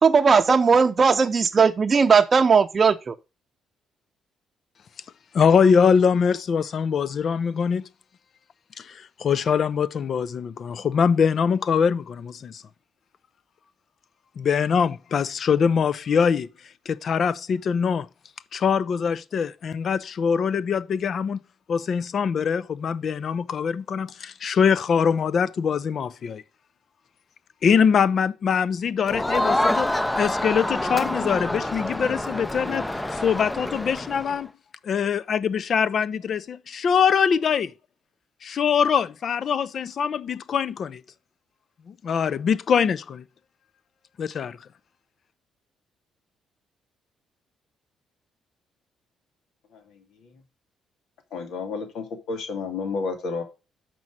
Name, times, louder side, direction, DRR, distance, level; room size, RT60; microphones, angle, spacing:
voice 1, 0.0-3.1, right 5 dB, 35° right, 0.6 m, -18 dB
voice 2, 5.3-7.8 8.8-12.6 14.4-16.5 16.9-18.1 18.5-21.4 21.7-26.4 27.6-34.5 34.8-37.7 38.4-41.0 41.9-43.2 44.2-44.6, left 6 dB, 55° left, 0.5 m, -23 dB
Crowd, 29.1-34.4, left 1 dB, 10° left, 0.5 m, -26 dB
voice 3, 49.7-50.3 51.3-53.4, left 4 dB, 80° left, 2.3 m, -31 dB
6.1 x 5.4 x 6.2 m
cardioid pair, 90°, 0 cm